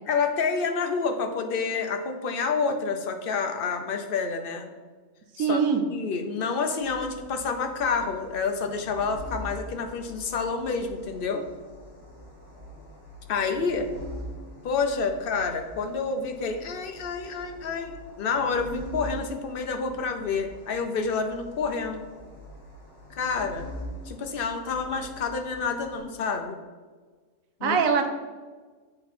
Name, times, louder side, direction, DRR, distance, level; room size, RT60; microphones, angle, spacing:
voice 1, 0.1-4.7 5.4-5.6 5.9-11.4 13.3-13.9 14.6-22.0 23.1-23.7 24.1-26.6 27.6-27.8, left 5 dB, 50° left, 5 dB, 0.7 m, -28 dB
voice 2, 5.4-5.9 27.6-28.1, right 6 dB, 70° right, 5 dB, 1.1 m, -22 dB
sound 1, 6.8-26.0, equal, 70° left, 2.7 m, -44 dB
8.1 x 4.4 x 4.2 m, 1.4 s
omnidirectional pair, 1.5 m